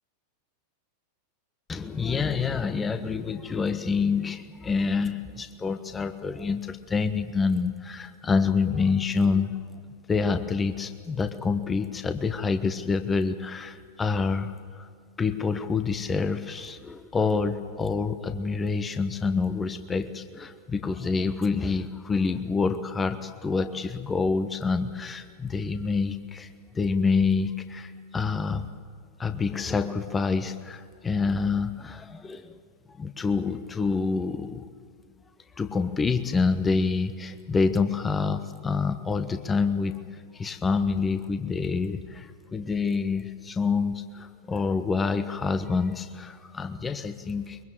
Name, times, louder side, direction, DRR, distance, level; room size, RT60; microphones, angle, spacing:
voice 1, 1.7-9.5 10.1-14.9 15.2-28.7 29.2-32.6 33.0-34.6 35.6-40.0 40.3-47.6, left 4 dB, 15° left, 9 dB, 1.1 m, -27 dB
23.5 x 23.0 x 7.5 m, 2.1 s
figure-of-eight pair, 90°, 0 cm